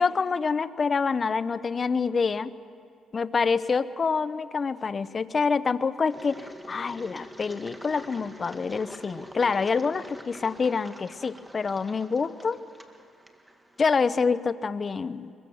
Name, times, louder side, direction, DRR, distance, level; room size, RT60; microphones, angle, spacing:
voice 1, 0.0-2.5 3.1-6.4 6.7-12.6 13.8-15.3, left 5 dB, 40° left, 15 dB, 0.8 m, -26 dB
Engine, 6.1-13.9, equal, 10° right, 2.0 m, -46 dB
22.5 x 22.5 x 7.1 m, 2.6 s
cardioid pair, 90°, 0 cm